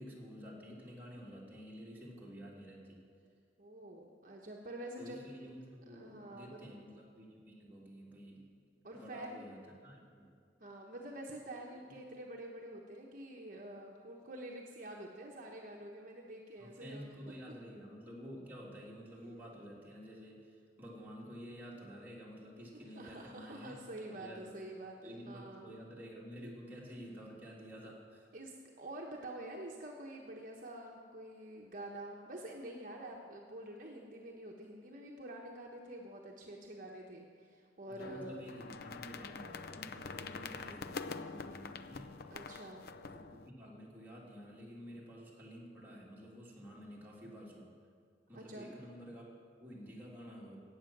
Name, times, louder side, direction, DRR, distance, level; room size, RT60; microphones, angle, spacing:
voice 1, 0.0-3.0 5.0-8.5 8.9-10.3 16.6-20.5 20.8-24.6 25.0-28.3 37.9-42.1 43.2-47.7 48.3-50.6, equal, 10° right, -5 dB, 2.5 m, -50 dB
voice 2, 3.6-5.2 5.9-6.6 8.8-9.4 10.6-17.5 22.9-25.7 26.4-26.6 28.3-38.4 42.3-42.9 48.3-48.7, right 1 dB, 50° right, 0 dB, 1.0 m, -47 dB
sound 1, 38.0-43.5, left 4 dB, 60° left, 0.5 m, -45 dB
15.0 x 8.8 x 6.0 m, 2.2 s
head